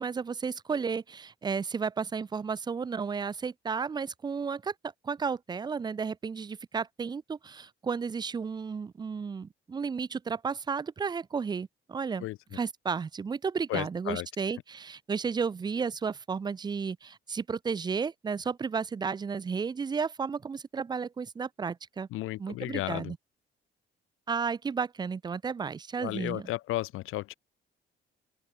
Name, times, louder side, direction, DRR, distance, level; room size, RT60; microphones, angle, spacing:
voice 1, 0.0-4.7 5.0-12.3 12.5-22.1 22.4-23.2 24.3-26.5, right 5 dB, 20° right, 0.5 m, -33 dB
voice 2, 13.7-14.3 22.1-23.1 26.0-27.3, left 17 dB, 85° left, 1.1 m, -33 dB
cardioid pair, 150°, 21 cm